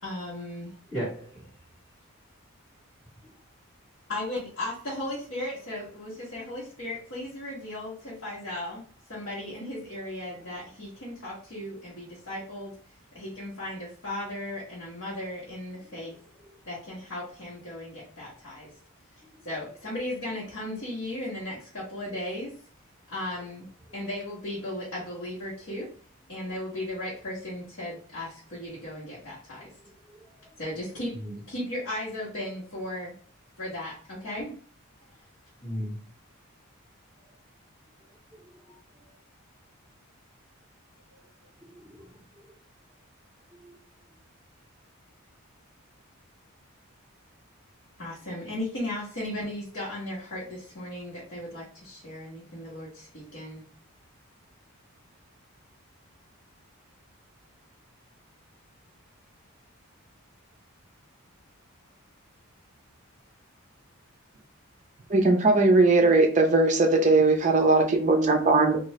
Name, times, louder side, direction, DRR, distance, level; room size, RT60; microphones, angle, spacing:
voice 1, 0.0-0.8 4.1-8.8 9.1-12.8 13.1-16.1 16.7-18.7 19.4-22.5 23.1-23.7 23.9-25.9 26.3-29.7 30.6-31.1 31.5-33.1 33.6-34.6 48.0-53.6, left 1 dB, 60° left, -7 dB, 1.0 m, -36 dB
voice 2, 0.9-1.5 29.6-29.7 30.1-30.3 31.2-31.4 35.6-36.0 41.7-42.0 42.4-42.5 43.6-43.7, equal, 20° left, -14 dB, 1.5 m, -36 dB
voice 3, 65.1-68.8, right 3 dB, 35° right, 4 dB, 0.5 m, -20 dB
2.8 x 2.4 x 3.1 m, 0.43 s
head